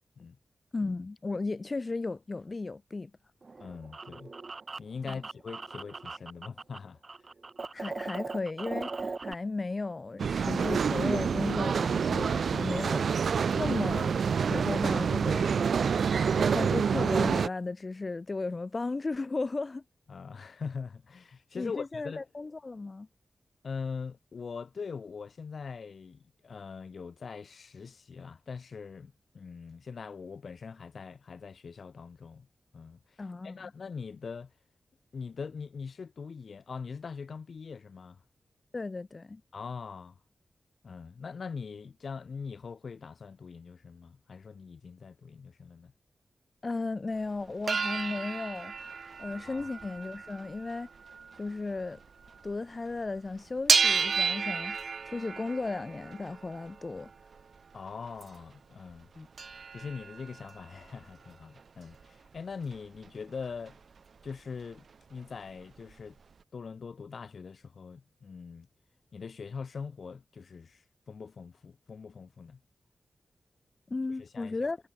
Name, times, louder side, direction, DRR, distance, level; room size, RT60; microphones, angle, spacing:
voice 1, 0.7-3.1 5.0-5.2 7.7-15.7 16.3-19.8 21.5-23.1 33.2-33.7 38.7-39.4 46.6-48.8 49.2-50.9 51.4-52.0 52.4-54.8 55.0-57.1 59.2-59.3 73.9-74.8, left 3 dB, 35° left, 4.5 m, -35 dB
sound 1, 3.4-6.8 7.0-9.3, right 4 dB, 45° right, 1.0 m, -39 dB
voice 2, 3.6-4.3 4.8-7.0 20.1-22.2 23.6-32.5 32.7-33.2 33.4-34.5 35.1-38.2 39.5-40.2 40.8-45.9 49.5-49.7 57.7-59.1 59.7-63.8 64.2-66.2 66.5-68.7 69.1-72.6 74.2-74.7, left 5 dB, 65° left, 2.8 m, -42 dB
sound 2, 10.2-17.5, right 6 dB, 85° right, 0.9 m, -27 dB
sound 3, 47.4-52.6 52.9-58.4 58.9-59.0 59.2-63.1 63.4-64.3 64.6-64.7 64.9-66.0 66.4-66.5, right 5 dB, 65° right, 3.9 m, -33 dB
wide cardioid pair, 105°, 0 cm